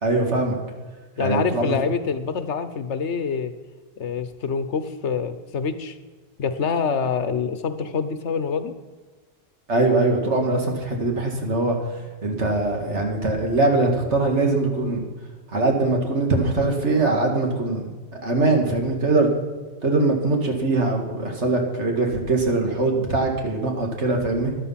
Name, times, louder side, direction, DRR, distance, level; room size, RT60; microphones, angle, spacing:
voice 1, 0.0-0.6 1.2-1.8 9.7-11.8 12.2-15.0 15.5-17.9 18.2-19.3 19.8-24.6, right 2 dB, 85° right, 2 dB, 2.4 m, -22 dB
voice 2, 1.2-3.5 4.0-6.0 6.4-8.7, left 6 dB, 85° left, 11 dB, 1.3 m, -26 dB
13.0 x 11.0 x 5.8 m, 1.3 s
omnidirectional pair, 1.1 m